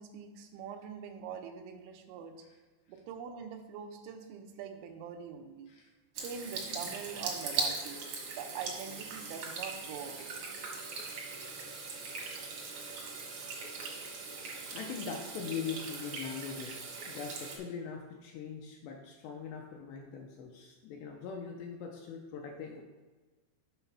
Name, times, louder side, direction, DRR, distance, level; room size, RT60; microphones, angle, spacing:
voice 1, 0.0-2.4 2.9-5.7 6.2-8.0 8.3-10.3, right 7 dB, 90° right, 4 dB, 3.4 m, -43 dB
Water tap faucet / Sink (filling or washing), 6.2-17.6, right 4 dB, 75° right, 1.7 m, -40 dB
voice 2, 14.7-22.8, left 6 dB, 85° left, 1 dB, 2.5 m, -41 dB
8.0 x 4.0 x 5.8 m, 1.3 s
omnidirectional pair, 5.5 m